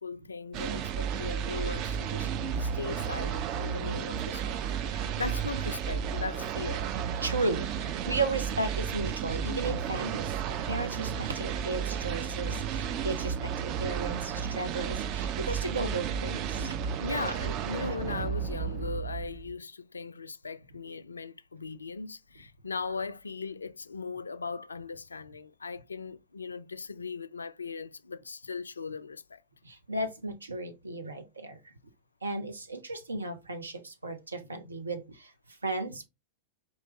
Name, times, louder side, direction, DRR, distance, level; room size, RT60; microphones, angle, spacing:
voice 1, 0.0-2.3 2.6-7.3 17.0-29.4, left 4 dB, 75° left, 0.3 m, -38 dB
sound 1, 0.5-19.5, right 8 dB, 40° right, 0.4 m, -33 dB
voice 2, 7.2-16.8 17.2-17.3 17.9-18.0 29.6-31.6 32.2-36.1, right 2 dB, 80° right, 0.7 m, -35 dB
4.5 x 2.7 x 2.9 m
figure-of-eight pair, 90°, 0 cm